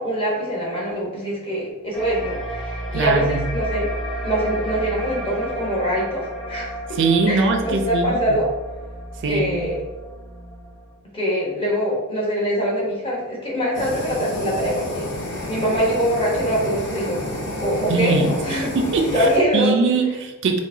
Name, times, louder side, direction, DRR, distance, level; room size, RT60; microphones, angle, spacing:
voice 1, 0.0-3.9 4.2-6.8 7.3-8.5 9.2-9.8 11.1-15.1 15.5-17.2 17.6-18.7 19.1-19.9, equal, 25° left, -3 dB, 0.9 m, -23 dB
sound 1, 1.9-11.0, right 1 dB, ahead, 0.5 m, -31 dB
voice 2, 2.9-3.4 6.9-8.4 9.2-9.7 17.9-19.3 19.5-20.6, right 3 dB, 55° right, 5 dB, 0.4 m, -21 dB
Fire, 13.7-19.4, left 1 dB, 55° left, 0.8 m, -30 dB
4.6 x 2.1 x 2.6 m, 1.1 s
head